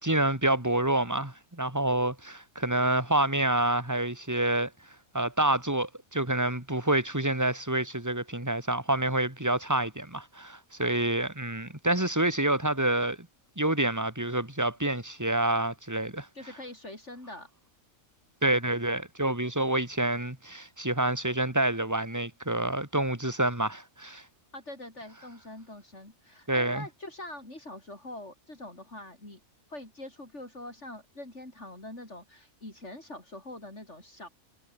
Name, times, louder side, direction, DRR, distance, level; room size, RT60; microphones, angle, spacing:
voice 1, 0.0-4.7 5.1-13.2 13.6-16.3 18.4-24.2 26.5-26.9, right 1 dB, 10° right, 3.3 m, -27 dB
voice 2, 16.3-17.5 24.5-29.4 29.7-34.3, left 1 dB, 60° left, 7.3 m, -44 dB
omnidirectional pair, 1.4 m